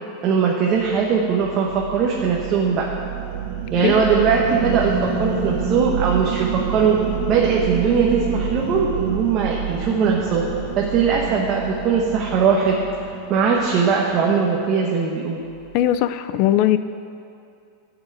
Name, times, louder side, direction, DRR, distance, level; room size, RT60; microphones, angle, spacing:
voice 1, 0.2-2.9 3.7-7.0 7.3-10.4 10.7-12.8 13.3-15.4, right 6 dB, 30° right, -2 dB, 1.2 m, -20 dB
sound 1, 0.7-14.3, right 7 dB, 70° right, 1.6 m, -28 dB
voice 2, 15.7-16.8, left 12 dB, 40° left, 13 dB, 0.5 m, -19 dB
12.0 x 7.1 x 8.4 m, 2.5 s
supercardioid pair, 165°, 0 cm